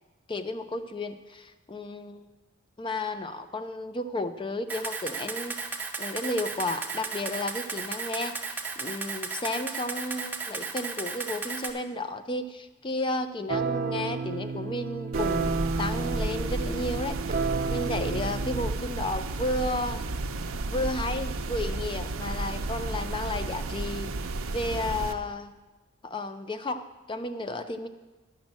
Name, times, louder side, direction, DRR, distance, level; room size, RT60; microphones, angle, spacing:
voice 1, 0.3-2.3 2.8-20.0 20.7-24.1 24.5-25.5 26.0-27.9, left 2 dB, 25° left, 10 dB, 0.5 m, -33 dB
Camera, 4.7-11.7, right 4 dB, 10° right, 0.7 m, -34 dB
sound 1, 13.5-18.7, right 4 dB, 40° right, 0.6 m, -31 dB
sound 2, 15.1-25.1, right 2 dB, 90° right, 0.7 m, -32 dB
10.0 x 6.1 x 7.4 m, 1.2 s
head